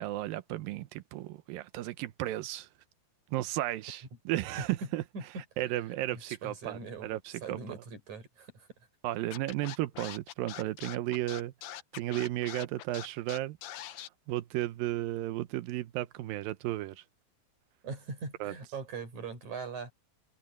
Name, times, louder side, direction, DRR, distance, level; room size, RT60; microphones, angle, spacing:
voice 1, 0.0-2.7 3.3-5.0 5.4-7.8 9.0-11.5 11.9-13.6 13.9-17.0 18.4-18.5, right 15 dB, 75° right, 2.5 m, -34 dB
voice 2, 6.1-7.1 7.4-8.7 17.8-19.9, right 5 dB, 50° right, 7.5 m, -41 dB
Scratching (performance technique), 9.3-14.1, left 12 dB, 70° left, 2.1 m, -43 dB
omnidirectional pair, 4.4 m